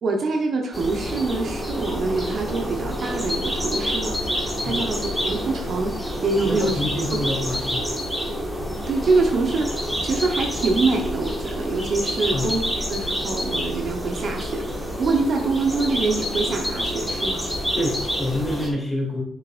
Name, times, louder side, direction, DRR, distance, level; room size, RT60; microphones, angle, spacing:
voice 1, 0.0-6.8 7.2-7.5 8.9-12.6 12.9-17.4, right 3 dB, 55° right, 2 dB, 1.0 m, -25 dB
sound 1, 0.7-18.7, equal, ahead, 1.7 m, -28 dB
voice 2, 6.4-7.8 12.3-12.6 17.8-19.2, left 1 dB, 15° left, -1 dB, 2.7 m, -27 dB
6.7 x 6.6 x 2.6 m, 0.72 s
cardioid pair, 90°, 0 cm